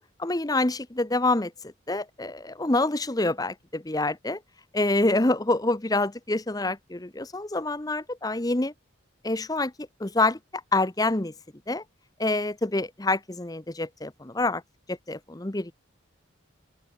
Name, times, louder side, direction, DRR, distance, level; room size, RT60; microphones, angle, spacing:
voice 1, 0.0-1.5 1.9-4.4 4.7-8.7 9.2-10.4 10.7-11.3 11.7-11.8 12.2-14.6 14.9-15.7, left 2 dB, 20° left, 0.9 m, -26 dB
open air
head